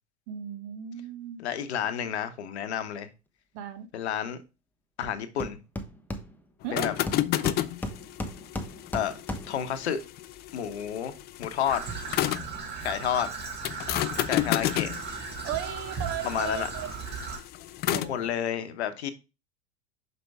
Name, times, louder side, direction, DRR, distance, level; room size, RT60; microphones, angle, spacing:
voice 1, 0.3-1.4 3.5-3.9 6.6-6.9 15.4-16.9 17.9-18.2, right 10 dB, 50° right, 1.2 m, -36 dB
voice 2, 1.4-3.1 3.9-4.4 5.0-5.6 6.7-6.9 8.9-9.1 9.5-10.0 10.5-11.1 11.4-11.8 12.8-13.3 14.2-14.9 16.2-16.7 18.1-19.1, left 9 dB, 70° left, 1.0 m, -30 dB
Hammer, 5.0-5.1 5.4-6.7 7.1-9.7, left 1 dB, 5° left, 0.9 m, -36 dB
sound 1, 6.6-12.6 13.6-18.2, left 14 dB, 30° left, 0.4 m, -32 dB
Traffic noise roadway noise / Trickle dribble, 11.7-17.4, right 5 dB, 30° right, 1.8 m, -37 dB
6.0 x 5.4 x 3.4 m
hypercardioid pair, 90°, 34 cm